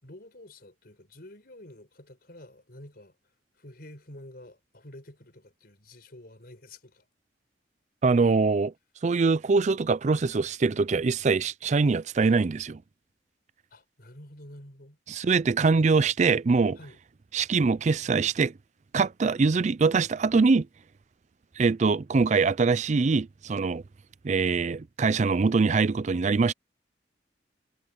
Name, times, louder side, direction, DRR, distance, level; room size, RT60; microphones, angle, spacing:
voice 1, 0.0-3.2 3.6-7.1 13.7-15.0 16.8-17.0, left 1 dB, 55° left, 5.3 m, -49 dB
voice 2, 8.0-8.7 9.0-12.8 15.1-16.8 17.3-18.5 18.9-20.7 21.6-23.8 24.2-26.5, right 4 dB, 40° right, 0.4 m, -23 dB
head